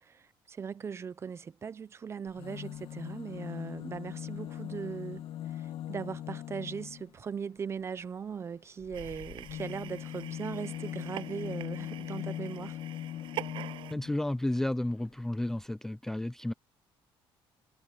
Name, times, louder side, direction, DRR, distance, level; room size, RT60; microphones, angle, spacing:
voice 1, 0.0-12.8, right 6 dB, 30° right, 0.8 m, -39 dB
sound 1, 2.3-7.1 8.8-14.3 15.2-15.3 15.5-15.6, left 12 dB, 70° left, 2.0 m, -40 dB
sound 2, 8.9-13.9, right 12 dB, 65° right, 7.6 m, -45 dB
voice 2, 13.9-16.5, left 1 dB, 5° left, 0.3 m, -32 dB
cardioid pair, 155°, 9 cm